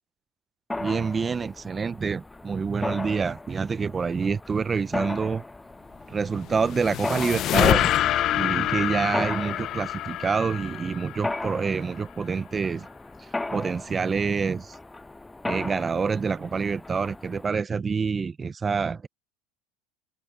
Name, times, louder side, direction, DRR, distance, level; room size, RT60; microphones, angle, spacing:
Mechanisms, 0.7-17.5, left 2 dB, 10° left, 7.8 m, -37 dB
voice 1, 0.8-5.4 6.1-7.9 8.3-12.9 13.5-14.8 15.4-19.1, right 5 dB, 25° right, 0.9 m, -27 dB
sound 1, 6.3-11.7, left 13 dB, 50° left, 1.0 m, -26 dB
supercardioid pair, 95°, 0 cm